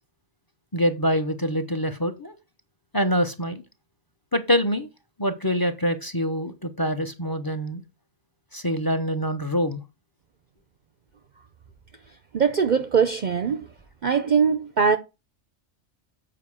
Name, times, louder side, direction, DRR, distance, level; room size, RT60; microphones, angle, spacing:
voice 1, 0.7-2.3 2.9-3.6 4.3-4.9 5.2-7.8 8.5-9.8, equal, 20° left, 0.8 m, -25 dB
voice 2, 12.3-13.7 14.0-15.0, right 6 dB, 50° right, 0.6 m, -21 dB
7.7 x 5.0 x 6.2 m
omnidirectional pair, 1.2 m